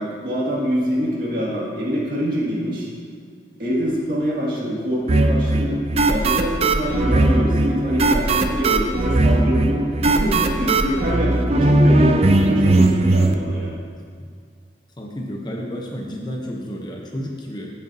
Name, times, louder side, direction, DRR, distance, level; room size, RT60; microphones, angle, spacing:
voice 1, 0.0-2.9 3.6-5.8 6.1-13.8, equal, 50° right, -5 dB, 2.2 m, -24 dB
sound 1, 5.1-13.3, right 2 dB, 35° right, 0.5 m, -18 dB
voice 2, 15.0-17.7, equal, 25° left, -1 dB, 0.9 m, -31 dB
16.5 x 6.7 x 2.8 m, 2.1 s
head